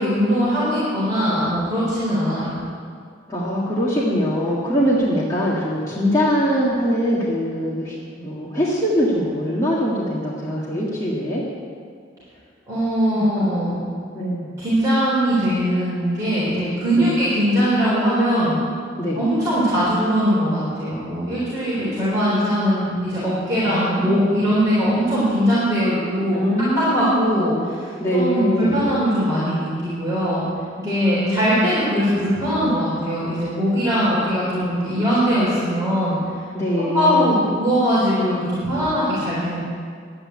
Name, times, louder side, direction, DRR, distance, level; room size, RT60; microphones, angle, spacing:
voice 1, 0.0-2.6 12.7-13.8 14.6-18.6 19.1-26.4 26.9-30.4 30.8-36.2 36.9-39.6, equal, 15° right, -11 dB, 4.1 m, -21 dB
voice 2, 3.3-11.4 13.1-13.7 14.1-14.5 16.9-17.1 19.0-19.2 23.6-24.5 26.3-27.4 28.0-28.8 31.0-31.7 36.5-37.4, equal, 15° left, -7 dB, 1.7 m, -23 dB
11.5 x 8.8 x 8.6 m, 2.1 s
head